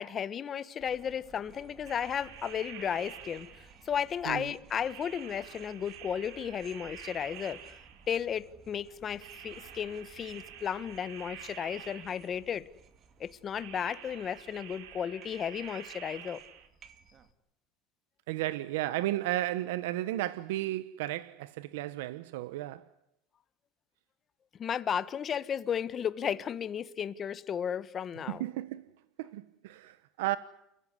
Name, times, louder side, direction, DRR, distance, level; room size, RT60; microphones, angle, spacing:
voice 1, 0.0-3.5 3.8-7.7 8.1-12.7 13.2-16.4 24.6-28.4, left 8 dB, 30° left, 1.3 m, -34 dB
sound 1, 0.8-17.3, right 6 dB, 35° right, 2.5 m, -58 dB
sound 2, 1.9-4.0 4.9-8.3 9.2-12.5 13.6-16.7, right 10 dB, 75° right, 4.3 m, -48 dB
voice 2, 18.3-22.9 28.3-28.9 29.2-30.4, right 15 dB, 90° right, 1.0 m, -33 dB
30.0 x 16.0 x 9.7 m
cardioid pair, 140°, 0 cm